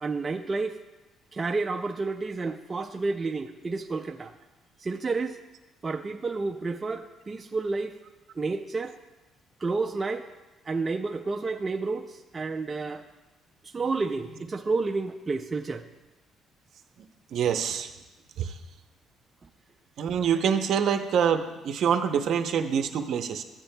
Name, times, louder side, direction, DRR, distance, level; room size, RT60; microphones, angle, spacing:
voice 1, 0.0-0.8 1.3-4.3 4.8-5.4 5.8-8.0 8.3-9.0 9.6-10.3 10.7-13.0 13.6-15.9, right 3 dB, 20° right, 3 dB, 0.4 m, -30 dB
voice 2, 17.3-17.9 18.4-18.6 20.0-23.4, right 7 dB, 55° right, 7 dB, 0.7 m, -25 dB
14.5 x 8.8 x 2.2 m, 1.1 s
cardioid pair, 150°, 0 cm